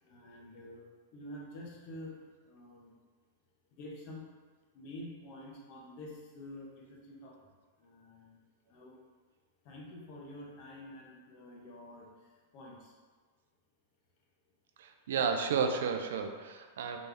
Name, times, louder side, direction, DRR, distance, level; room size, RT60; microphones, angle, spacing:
voice 1, 0.0-2.2 2.4-2.9 3.7-4.3 4.7-7.5 7.8-8.4 8.7-9.0 9.6-12.9, left 1 dB, 50° left, -2 dB, 1.1 m, -48 dB
voice 2, 14.8-17.0, right 6 dB, 80° right, 6 dB, 0.5 m, -32 dB
4.0 x 3.3 x 3.5 m, 1.5 s
hypercardioid pair, 125°, 0 cm